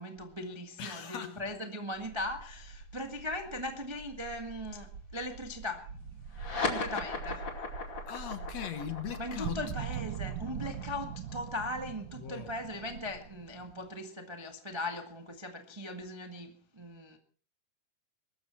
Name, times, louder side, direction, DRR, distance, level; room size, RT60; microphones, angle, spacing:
voice 1, 0.0-5.9 6.6-7.4 9.2-17.2, left 1 dB, 20° right, 0.6 m, -39 dB
voice 2, 0.8-1.4 8.1-9.7 12.2-12.5, left 9 dB, 60° left, 2.3 m, -39 dB
sound 1, 1.9-12.3 12.6-13.2, right 4 dB, 50° right, 3.4 m, -47 dB
sound 2, 5.9-7.8 9.4-13.9, right 10 dB, 75° right, 2.4 m, -42 dB
sound 3, 6.3-13.2, left 4 dB, 35° left, 2.9 m, -38 dB
22.5 x 13.5 x 4.4 m
omnidirectional pair, 4.0 m